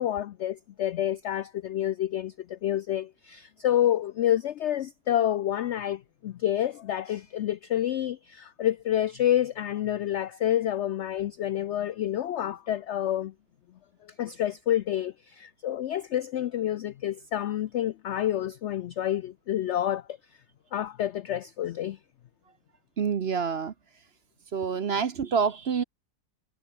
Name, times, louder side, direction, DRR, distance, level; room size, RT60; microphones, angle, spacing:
voice 1, 0.0-13.3 14.0-20.2 20.7-22.0, left 11 dB, 85° left, 0.6 m, -28 dB
voice 2, 23.0-23.7 24.5-25.8, right 6 dB, 45° right, 1.0 m, -27 dB
omnidirectional pair, 1.8 m